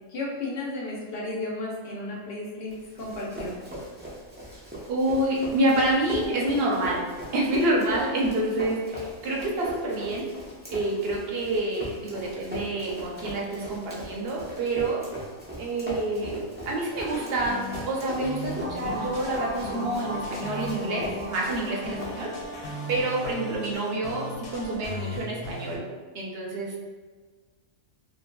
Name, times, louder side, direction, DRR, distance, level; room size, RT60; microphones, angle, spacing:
voice 1, 0.1-3.6, left 2 dB, 60° left, -3 dB, 0.7 m, -33 dB
Run, 2.7-22.5, equal, 15° right, 0.3 m, -40 dB
voice 2, 4.9-7.1 7.3-10.3 10.7-15.0 15.6-22.3 22.9-25.8 26.1-26.7, right 1 dB, 60° right, -3 dB, 0.7 m, -27 dB
sound 1, 17.1-25.8, left 1 dB, 80° left, 1.0 m, -38 dB
sound 2, 18.6-23.4, right 1 dB, 80° right, 1.0 m, -39 dB
2.6 x 2.5 x 2.2 m, 1.5 s
omnidirectional pair, 1.3 m